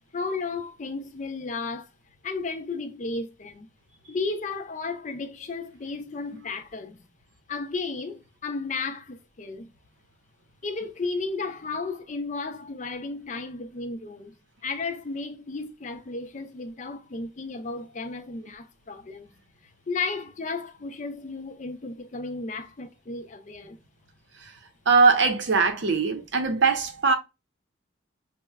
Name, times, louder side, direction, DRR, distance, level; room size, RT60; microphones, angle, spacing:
voice 1, 0.1-1.9 2.2-3.7 4.1-7.0 7.5-9.7 10.6-14.3 14.6-19.3 19.9-23.8, left 3 dB, 40° left, 0.5 m, -33 dB
voice 2, 24.9-27.1, right 4 dB, 65° right, 0.7 m, -21 dB
5.4 x 2.1 x 2.3 m
head